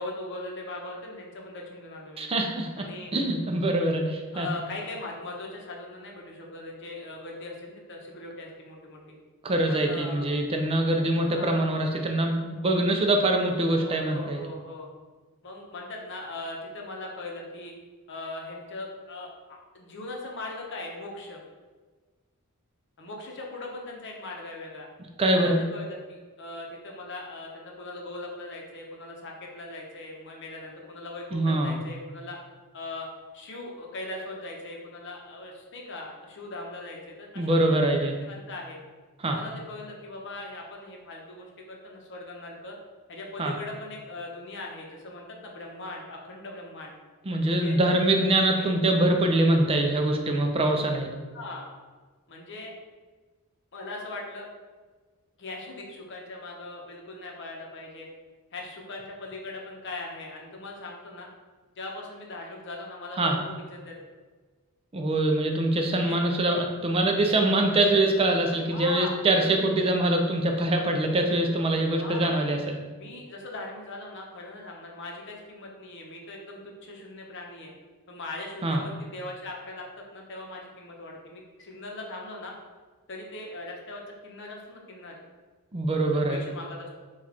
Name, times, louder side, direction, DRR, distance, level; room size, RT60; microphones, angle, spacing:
voice 1, 0.0-2.2 2.8-3.1 4.3-9.1 9.7-10.3 11.2-11.6 13.8-14.9 15.4-17.7 18.1-21.4 23.0-24.9 25.2-32.4 32.7-33.1 33.3-37.9 38.2-38.8 39.3-42.8 43.1-46.9 47.6-48.3 48.6-48.7 51.3-51.7 52.3-52.7 53.7-54.5 55.4-58.1 58.5-61.3 61.8-63.9 65.9-66.2 68.7-69.2 71.9-72.4 73.0-77.7 78.1-82.5 83.1-85.2 86.1-86.9, left 2 dB, 55° left, 0 dB, 0.8 m, -40 dB
voice 2, 2.2-4.5 9.4-14.4 25.2-25.6 31.3-31.8 37.4-38.2 39.2-39.4 43.4-43.6 47.3-51.1 63.2-63.4 64.9-72.8 78.6-78.8 85.7-86.4, right 1 dB, 25° right, 3 dB, 0.4 m, -24 dB
6.0 x 2.4 x 2.9 m, 1.4 s
head